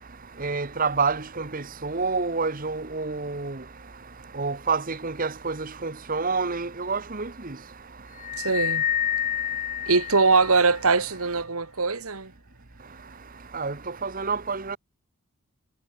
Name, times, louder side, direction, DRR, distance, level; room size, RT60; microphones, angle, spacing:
voice 1, 0.4-3.6 4.3-7.3 13.5-13.7 14.0-14.8, right 4 dB, 40° right, 1.3 m, -28 dB
sound 1, 8.2-10.8, left 9 dB, 35° left, 0.4 m, -28 dB
voice 2, 8.4-8.9 9.8-12.3, right 4 dB, 70° right, 1.8 m, -22 dB
head